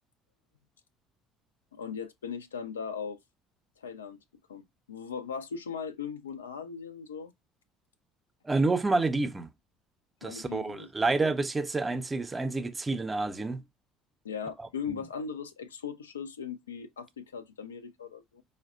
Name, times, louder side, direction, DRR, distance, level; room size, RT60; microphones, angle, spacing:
voice 1, 1.7-3.2 3.8-4.2 4.5-7.3 10.2-10.9 14.2-18.4, left 6 dB, 85° left, 0.3 m, -39 dB
voice 2, 8.4-9.5 10.2-13.6 14.9-15.0, right 3 dB, 20° right, 0.5 m, -28 dB
4.6 x 2.1 x 2.3 m
figure-of-eight pair, 60°, 0 cm